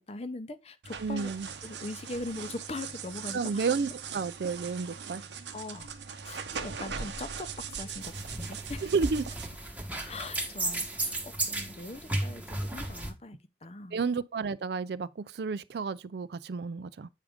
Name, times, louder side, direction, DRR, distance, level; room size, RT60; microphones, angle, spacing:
voice 1, 0.0-1.3 1.6-3.7 5.5-5.9 6.2-8.9 10.0-14.0, left 2 dB, 35° left, 0.6 m, -41 dB
sound 1, 0.8-9.5, right 6 dB, 90° right, 0.9 m, -40 dB
voice 2, 1.0-1.5 3.3-5.2 8.8-9.3 13.9-17.1, right 5 dB, 65° right, 0.4 m, -31 dB
sound 2, 8.0-13.1, right 1 dB, 10° right, 1.1 m, -34 dB
8.3 x 5.0 x 3.5 m
head